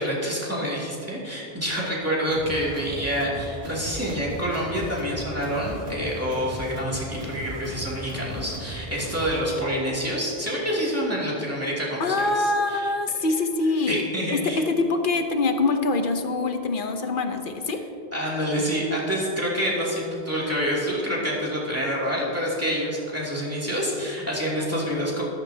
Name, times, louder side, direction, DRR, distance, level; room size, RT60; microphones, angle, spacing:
voice 1, 0.0-12.9 13.9-14.6 18.1-25.2, equal, 15° right, -6 dB, 2.6 m, -27 dB
sound 1, 2.3-9.4, right 1 dB, 75° right, 1.8 m, -37 dB
voice 2, 12.0-14.0 14.3-17.8, left 3 dB, 55° left, 6 dB, 1.0 m, -24 dB
13.5 x 13.0 x 2.8 m, 2.7 s
omnidirectional pair, 1.1 m